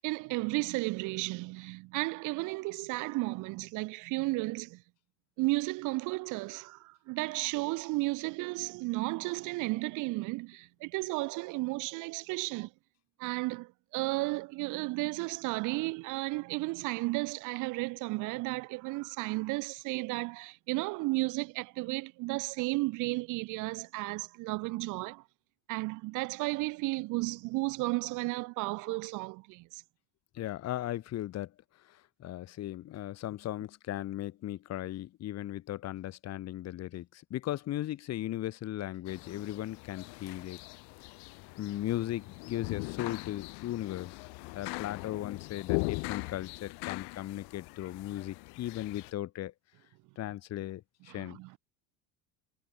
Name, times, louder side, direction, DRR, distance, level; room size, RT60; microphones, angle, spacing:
voice 1, 0.0-4.8 5.4-12.7 13.2-25.2 25.7-29.8 51.1-51.6, right 23 dB, 45° right, 0.7 m, -33 dB
voice 2, 30.3-31.5 31.9-40.6 41.6-44.3 44.5-49.5 50.2-51.6, left 13 dB, 35° left, 2.1 m, -37 dB
sound 1, 39.1-49.1, left 31 dB, 60° left, 2.8 m, -40 dB
supercardioid pair, 140°, 42 cm